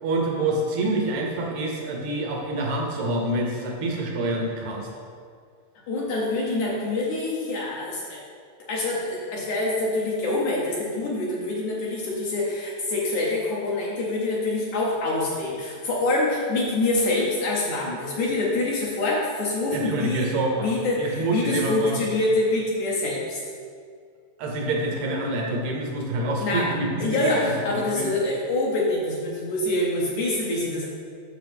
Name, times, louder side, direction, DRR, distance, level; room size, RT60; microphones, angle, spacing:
voice 1, 0.0-4.9 19.7-20.7 21.0-22.0 24.4-28.1, right 2 dB, 70° right, 0 dB, 1.8 m, -27 dB
voice 2, 5.9-8.2 8.7-20.3 20.6-23.4 26.4-26.7 27.0-30.9, left 2 dB, 70° left, -4 dB, 2.0 m, -25 dB
7.7 x 6.6 x 3.6 m, 2.2 s
omnidirectional pair, 4.1 m